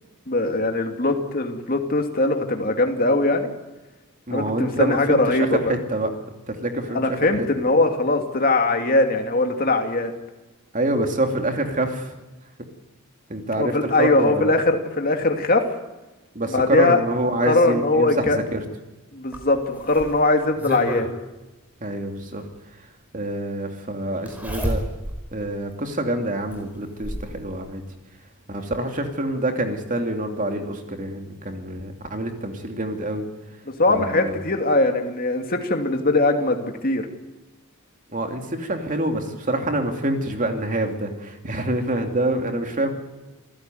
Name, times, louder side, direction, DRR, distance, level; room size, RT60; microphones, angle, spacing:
voice 1, 0.3-3.5 4.3-5.8 6.9-10.1 13.6-15.7 16.5-17.0 17.5-18.4 19.1-21.1 33.7-37.1, left 2 dB, 40° left, 4 dB, 2.6 m, -21 dB
voice 2, 4.3-6.1 6.5-7.3 10.7-12.1 13.3-14.5 16.3-18.6 21.8-22.4 22.7-22.9 23.1-24.8 25.3-27.8 28.5-33.2 33.9-34.3 38.1-42.9, right 1 dB, 35° right, 4 dB, 2.8 m, -26 dB
Zipper (clothing), 19.3-21.1 22.5-22.6 24.3-25.2 25.7-25.8 26.5-27.3 28.5-28.6 29.0-29.1, equal, 5° right, 4.7 m, -30 dB
28.0 x 16.0 x 9.3 m, 1.1 s
head